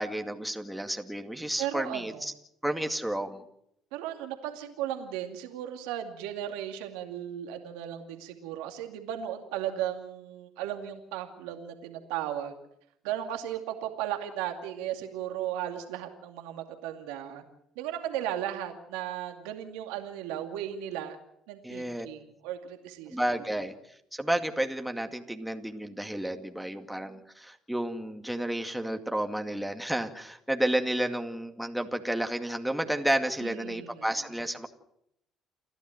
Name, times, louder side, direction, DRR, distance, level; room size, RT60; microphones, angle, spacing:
voice 1, 0.0-2.3 2.6-3.4 21.6-22.1 23.1-23.7 24.1-34.7, right 1 dB, 5° right, 5 dB, 2.2 m, -31 dB
voice 2, 1.6-2.3 3.9-12.5 13.0-17.4 17.8-21.2 21.5-23.2 33.4-34.1, right 11 dB, 85° right, 5 dB, 2.4 m, -36 dB
29.5 x 11.5 x 9.3 m, 0.76 s
supercardioid pair, 65°, 0 cm